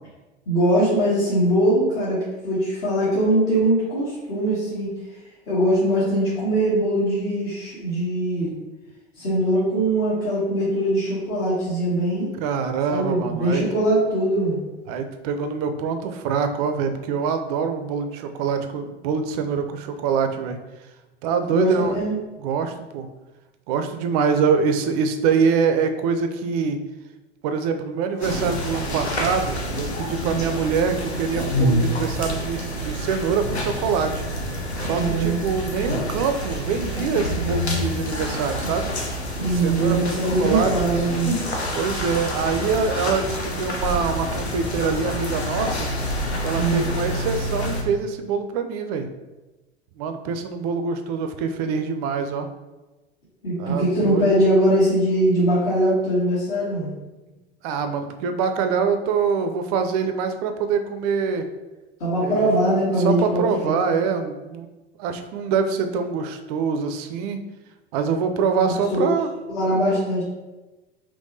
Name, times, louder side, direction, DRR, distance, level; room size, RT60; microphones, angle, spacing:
voice 1, 0.5-4.9 5.5-8.5 9.2-12.3 12.9-14.6 21.4-22.2 30.2-30.5 34.9-35.4 39.4-41.3 46.6-46.8 53.4-56.9 62.0-63.8 68.9-69.1 69.5-70.2, right 1 dB, 50° left, -10 dB, 1.4 m, -21 dB
voice 2, 12.4-13.6 14.9-20.6 21.2-22.0 22.4-23.1 23.7-26.8 27.4-34.2 34.8-38.9 39.5-40.7 41.7-45.9 46.4-49.1 50.0-52.5 53.6-54.3 57.3-57.4 57.6-61.5 62.2-62.5 63.0-64.7 65.0-67.4 67.9-69.3, right 5 dB, 40° right, 7 dB, 0.4 m, -24 dB
sound 1, 28.2-47.8, equal, 85° left, 0.7 m, -27 dB
3.3 x 3.0 x 2.6 m, 1.1 s
figure-of-eight pair, 80°, 32 cm